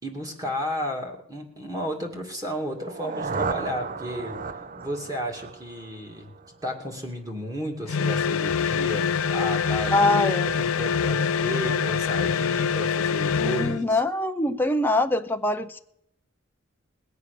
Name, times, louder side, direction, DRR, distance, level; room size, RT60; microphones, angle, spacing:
voice 1, 0.0-6.3 6.6-10.0 10.6-14.0, equal, 15° right, 1 dB, 2.4 m, -33 dB
sound 1, 2.7-6.6, right 4 dB, 40° right, 0.7 m, -34 dB
sound 2, 7.9-13.8, left 6 dB, 85° left, 0.5 m, -25 dB
voice 2, 9.9-10.5 13.4-15.8, left 2 dB, 10° left, 7 dB, 0.5 m, -23 dB
20.0 x 8.3 x 6.7 m, 0.76 s
head